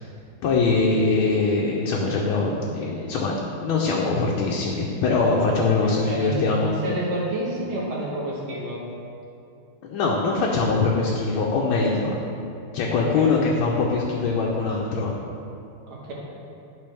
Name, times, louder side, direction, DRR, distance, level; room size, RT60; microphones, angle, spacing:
voice 1, 0.4-6.7 9.8-12.2 12.7-15.1, left 3 dB, 80° left, -3 dB, 1.5 m, -22 dB
voice 2, 5.8-8.8 12.9-13.4 15.9-16.1, right 1 dB, 80° right, -5 dB, 2.3 m, -29 dB
11.0 x 4.8 x 3.4 m, 2.6 s
omnidirectional pair, 2.3 m